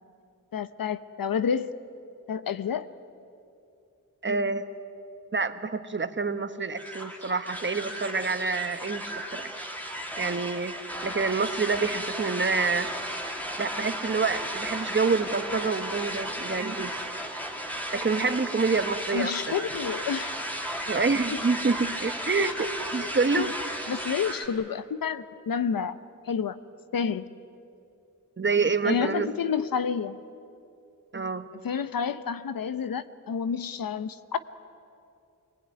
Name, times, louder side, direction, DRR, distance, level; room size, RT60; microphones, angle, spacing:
voice 1, 0.5-1.7 2.3-2.9 19.1-20.4 21.3-21.4 22.4-22.5 23.0-23.5 23.9-26.0 26.3-26.6 26.9-27.3 28.8-30.2 31.6-34.4, left 7 dB, 90° left, 13 dB, 0.9 m, -29 dB
voice 2, 4.2-4.6 5.3-9.5 10.2-10.7 11.0-12.9 13.6-16.9 17.9-19.4 20.9-23.5 28.4-29.3 31.1-31.5, right 4 dB, 35° right, 10 dB, 1.2 m, -27 dB
sound 1, 6.8-24.5, equal, 5° left, 2.7 m, -34 dB
25.5 x 20.5 x 9.7 m, 2.6 s
wide cardioid pair, 115°, 33 cm